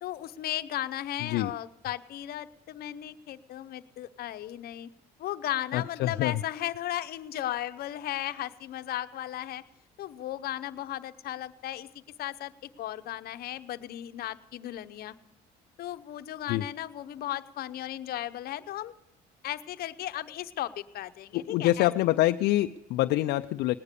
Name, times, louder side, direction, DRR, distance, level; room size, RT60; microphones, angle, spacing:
voice 1, 0.0-4.9 5.2-9.6 10.0-11.9 12.2-15.1 15.8-18.9 19.4-21.9, left 13 dB, 65° left, 12 dB, 0.8 m, -36 dB
voice 2, 5.7-6.3 16.5-16.6 21.3-23.8, left 15 dB, 80° left, 8 dB, 0.5 m, -25 dB
19.0 x 9.8 x 6.7 m, 0.91 s
cardioid pair, 110°, 17 cm